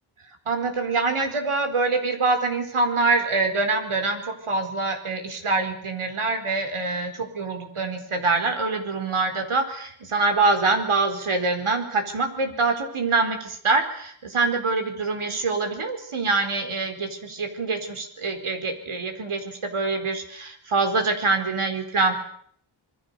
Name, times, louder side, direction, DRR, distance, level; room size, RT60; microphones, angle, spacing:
voice 1, 0.5-22.1, right 3 dB, 80° right, 5 dB, 4.5 m, -25 dB
26.5 x 21.5 x 6.8 m, 0.63 s
wide cardioid pair, 80°, 49 cm